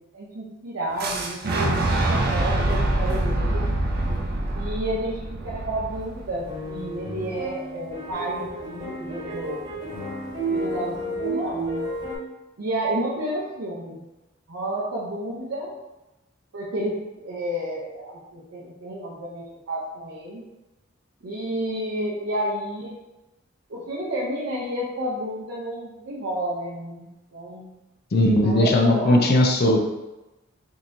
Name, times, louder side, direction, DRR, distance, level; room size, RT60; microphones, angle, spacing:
voice 1, 0.1-1.7 2.1-3.6 4.5-9.7 10.5-11.8 12.6-14.0 14.5-15.7 16.5-20.4 21.2-23.0 23.7-27.7 28.4-29.3, right 1 dB, 85° right, -6 dB, 0.7 m, -31 dB
Fire / Explosion, 1.0-6.9, right 1 dB, 50° right, 0.5 m, -25 dB
sound 1, 6.4-12.2, right 1 dB, 20° right, 1.1 m, -31 dB
voice 2, 28.1-29.8, left 1 dB, 55° left, 2 dB, 0.5 m, -18 dB
3.7 x 2.9 x 2.6 m, 1.0 s
head